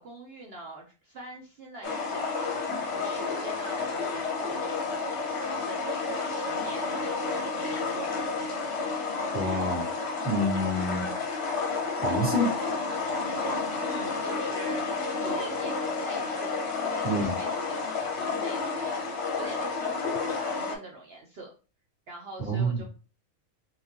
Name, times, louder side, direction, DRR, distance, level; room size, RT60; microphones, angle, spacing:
voice 1, 0.0-5.2 5.6-8.5 13.8-15.0 15.2-17.8 18.2-21.5 22.1-22.9, right 2 dB, 55° right, 0 dB, 0.7 m, -44 dB
sound 1, 1.8-20.7, left 4 dB, 55° left, 0.9 m, -30 dB
voice 2, 9.3-9.9 10.2-11.1 11.9-12.5 17.0-17.3 22.4-22.8, equal, 5° right, -4 dB, 1.3 m, -27 dB
3.8 x 2.5 x 2.8 m, 0.35 s
omnidirectional pair, 1.5 m